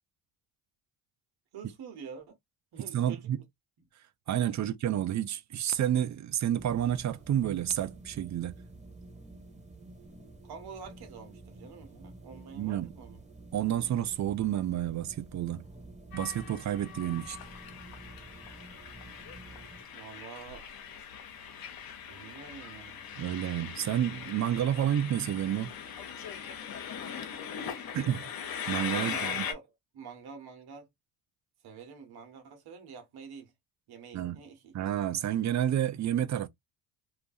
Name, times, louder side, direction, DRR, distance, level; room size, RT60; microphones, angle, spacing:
voice 1, 1.5-2.3 2.7-3.3 4.6-4.7 10.4-13.2 19.9-20.6 22.1-23.0 28.9-30.9 31.6-33.5 33.9-34.7, right 6 dB, 60° right, 1.2 m, -47 dB
voice 2, 2.9-3.4 4.3-8.5 12.5-12.9 13.5-15.7 16.1-17.4 23.2-25.7 27.9-28.2 28.7-29.4 34.1-34.4 34.7-36.5, right 11 dB, 40° right, 0.5 m, -30 dB
sound 1, 6.6-19.8, right 2 dB, 15° right, 1.7 m, -50 dB
Train, 16.1-29.5, left 7 dB, 55° left, 0.9 m, -40 dB
2.5 x 2.4 x 2.5 m
supercardioid pair, 65°, 43 cm